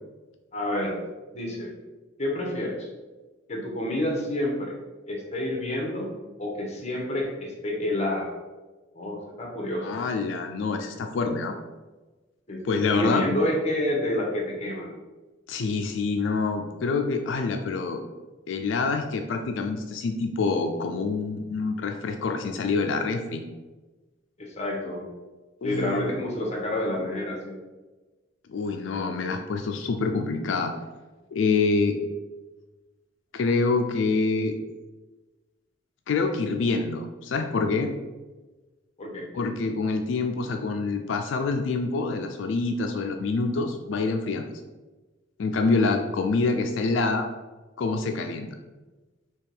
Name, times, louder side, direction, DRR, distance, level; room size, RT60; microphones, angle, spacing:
voice 1, 0.5-1.0 1.3-1.7 2.2-2.9 3.5-4.8 5.1-6.1 6.4-8.3 8.9-10.1 12.5-15.0 24.4-25.0 25.6-27.5 39.0-39.3, left 1 dB, 35° left, 0 dB, 0.9 m, -29 dB
voice 2, 9.8-11.6 12.6-13.2 15.5-18.0 18.5-23.4 25.6-26.2 28.5-30.7 31.3-32.0 33.3-34.6 36.1-37.9 39.3-44.5 45.4-47.3 47.8-48.5, left 4 dB, 70° left, 5 dB, 0.4 m, -26 dB
3.5 x 2.9 x 4.5 m, 1.2 s
head